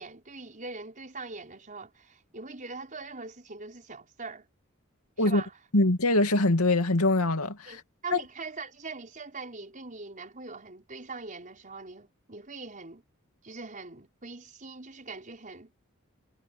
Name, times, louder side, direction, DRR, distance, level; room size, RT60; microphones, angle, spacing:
voice 1, 0.0-4.5 5.2-5.5 7.7-13.0 13.4-15.7, right 3 dB, 35° right, 5.6 m, -42 dB
voice 2, 5.7-7.8 8.1-8.2, left 2 dB, 85° left, 2.4 m, -23 dB
head